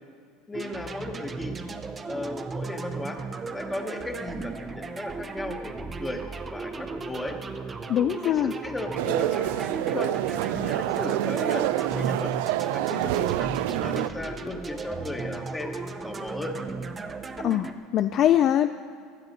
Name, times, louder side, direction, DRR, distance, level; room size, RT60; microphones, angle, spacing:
voice 1, 0.5-1.5 2.0-3.2 3.5-6.3 6.5-7.4 8.2-10.1 10.4-12.3 12.7-16.6, left 1 dB, 10° left, 4 dB, 1.1 m, -35 dB
sound 1, 0.5-17.7, right 4 dB, 15° right, 0.6 m, -36 dB
voice 2, 7.9-8.5 17.4-18.7, left 11 dB, 40° left, 11 dB, 0.3 m, -22 dB
sound 2, 9.0-14.1, right 15 dB, 80° right, 0.4 m, -27 dB
16.0 x 11.5 x 5.4 m, 2.2 s
cardioid pair, 155°, 0 cm